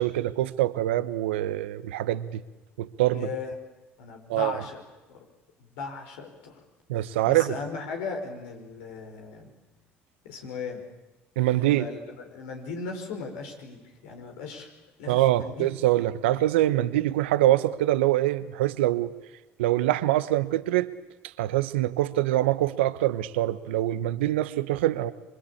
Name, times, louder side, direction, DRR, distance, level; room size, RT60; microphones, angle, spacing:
voice 1, 0.0-2.4 2.8-3.3 4.3-4.6 6.9-7.6 11.4-11.9 15.1-19.1 19.6-20.9 21.4-25.1, right 14 dB, 85° right, 14 dB, 1.1 m, -24 dB
voice 2, 3.1-3.5 4.0-4.8 5.1-5.3 5.6-6.6 7.2-9.5 10.2-10.8 11.5-14.7 15.0-15.7 16.2-16.4, left 4 dB, 80° left, 3 dB, 5.3 m, -37 dB
26.0 x 23.5 x 8.6 m, 1.1 s
hypercardioid pair, 65°, 6 cm